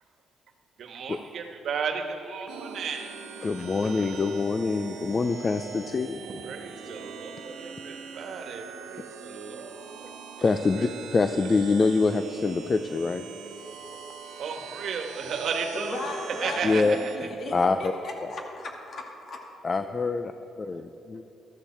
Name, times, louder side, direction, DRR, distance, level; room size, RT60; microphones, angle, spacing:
voice 1, 0.8-3.1 6.3-10.1 10.4-10.9 14.4-16.0 16.4-17.3, right 5 dB, 65° right, 4 dB, 1.4 m, -34 dB
sound 1, 2.5-17.2, right 6 dB, 90° right, 1.1 m, -42 dB
voice 2, 3.4-6.2 10.4-13.2 16.6-17.0 17.5-17.9 19.6-20.3 20.6-21.2, left 4 dB, 35° left, 8 dB, 0.5 m, -25 dB
voice 3, 15.7-19.4, left 2 dB, 55° left, 0 dB, 2.4 m, -37 dB
14.5 x 13.0 x 4.4 m, 2.9 s
cardioid pair, 90°, 0 cm